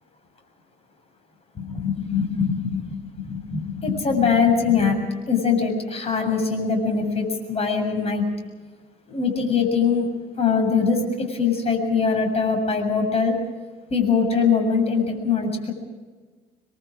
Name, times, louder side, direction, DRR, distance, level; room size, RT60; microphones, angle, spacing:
voice 1, 1.6-5.0 5.3-8.2 9.1-10.1 10.4-13.4 13.9-15.7, left 5 dB, 35° left, 5 dB, 7.3 m, -22 dB
28.5 x 22.0 x 5.0 m, 1.4 s
cardioid pair, 110°, 17 cm